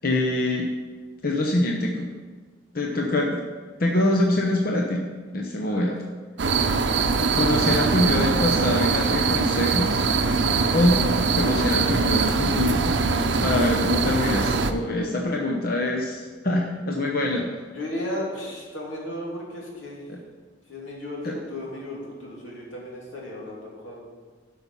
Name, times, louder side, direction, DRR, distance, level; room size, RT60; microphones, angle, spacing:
voice 1, 0.0-0.7 1.2-2.1 2.7-3.4 3.8-5.9 7.3-10.1 10.7-11.0 11.3-12.9 13.3-17.5 20.1-20.2 21.2-21.3, left 1 dB, 50° left, 0 dB, 0.9 m, -24 dB
voice 2, 5.6-6.0 6.4-6.9 17.7-20.0 20.7-24.1, left 1 dB, 90° left, -4 dB, 2.9 m, -35 dB
sound 1, 6.4-14.7, right 4 dB, 70° right, 0.6 m, -22 dB
12.0 x 5.7 x 5.6 m, 1.5 s
head